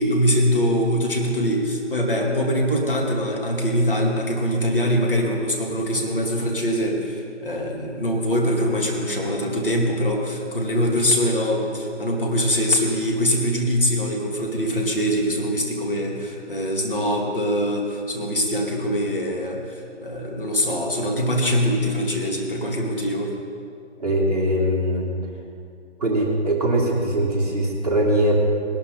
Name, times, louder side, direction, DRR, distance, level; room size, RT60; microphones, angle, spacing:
voice 1, 0.0-23.3, equal, 50° left, -1 dB, 2.4 m, -23 dB
voice 2, 24.0-25.0 26.0-28.3, right 1 dB, 35° right, -4 dB, 2.3 m, -21 dB
20.0 x 12.0 x 3.9 m, 2.3 s
figure-of-eight pair, 165°, 36 cm